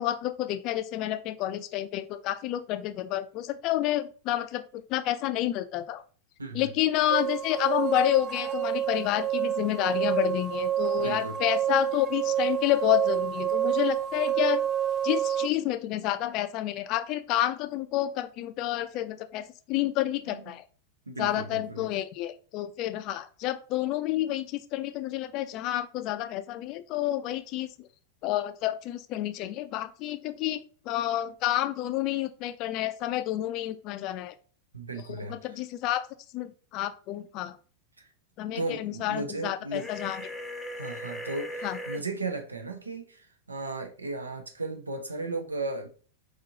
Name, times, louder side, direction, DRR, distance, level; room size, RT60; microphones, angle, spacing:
voice 1, 0.0-6.0 6.5-14.6 15.0-20.6 21.2-27.7 28.2-34.3 35.3-36.0 36.3-37.6 38.4-40.2 41.6-41.8, left 14 dB, 40° left, 0.4 m, -29 dB
voice 2, 6.4-6.7 11.0-11.4 20.3-20.4 21.1-21.9 34.7-35.6 38.0-38.1 38.5-39.9 40.8-45.9, right 3 dB, 80° right, 0.7 m, -36 dB
sound 1, 7.1-15.5, right 11 dB, 30° right, 0.4 m, -28 dB
sound 2, 39.7-42.0, equal, 5° left, 0.7 m, -38 dB
4.7 x 3.7 x 2.8 m
figure-of-eight pair, 90°, 0 cm